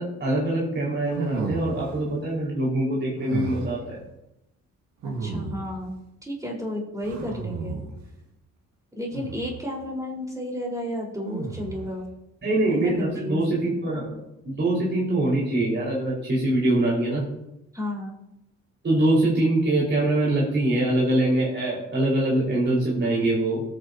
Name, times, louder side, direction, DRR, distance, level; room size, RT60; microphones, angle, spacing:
voice 1, 0.0-4.0 12.4-14.2 14.4-17.3 18.8-23.6, right 1 dB, 40° right, -6 dB, 4.8 m, -23 dB
sound 1, 1.1-2.1 3.2-3.9 5.0-5.9 7.0-8.0 9.1-9.7 11.2-12.0, right 4 dB, 70° right, 1.8 m, -33 dB
voice 2, 5.0-5.9 6.2-7.8 8.9-12.1 12.6-13.6 17.7-18.2, left 1 dB, 10° right, -2 dB, 4.3 m, -32 dB
18.5 x 9.5 x 2.8 m, 0.87 s
cardioid pair, 90°, 30 cm